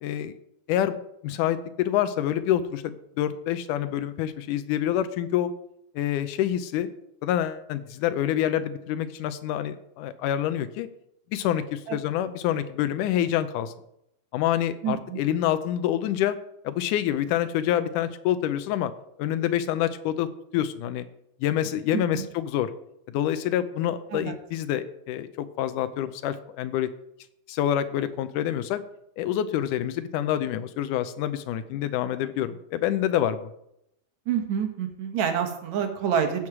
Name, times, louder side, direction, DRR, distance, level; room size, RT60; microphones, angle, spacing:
voice 1, 0.0-0.4 0.7-5.5 6.0-6.9 7.2-10.9 11.3-13.7 14.3-16.4 16.6-18.9 19.2-21.1 21.4-22.7 23.1-26.9 27.5-28.8 29.2-33.5, left 11 dB, 85° left, 11 dB, 2.2 m, -27 dB
voice 2, 14.8-15.2 21.9-22.3 24.1-24.3 34.3-36.5, right 8 dB, 65° right, 5 dB, 2.5 m, -27 dB
16.0 x 6.4 x 6.0 m, 0.78 s
omnidirectional pair, 3.6 m